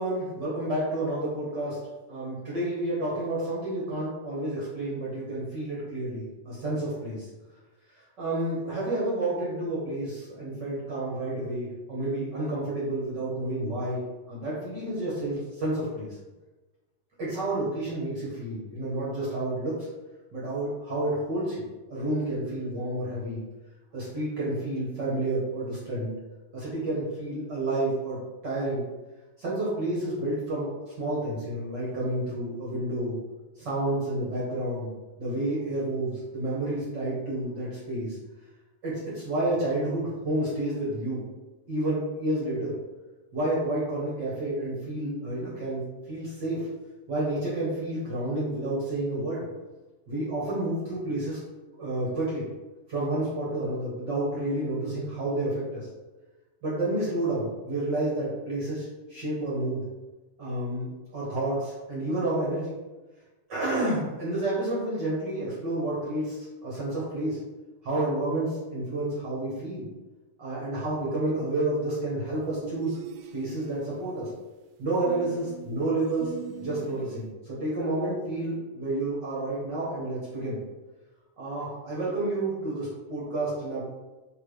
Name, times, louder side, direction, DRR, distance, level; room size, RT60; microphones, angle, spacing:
voice 1, 0.0-1.8 2.1-7.3 8.2-14.0 14.3-16.1 17.2-19.9 20.3-23.4 23.9-26.1 26.5-28.2 28.4-28.8 29.4-30.7 31.0-33.2 33.6-34.9 35.2-38.2 38.8-41.2 41.7-42.7 43.3-45.8 46.1-46.7 47.1-49.4 50.1-51.4 51.8-52.4 52.9-55.9 56.6-59.8 60.4-62.7 63.5-67.4 67.8-69.8 70.4-73.0 73.3-74.3 74.8-76.3 76.6-80.6 81.4-83.8, right 1 dB, 65° right, -7 dB, 1.0 m, -30 dB
sound 1, 72.6-73.8 75.1-77.3, right 7 dB, 80° right, 2.3 m, -40 dB
6.5 x 3.2 x 5.0 m, 1.2 s
omnidirectional pair, 4.8 m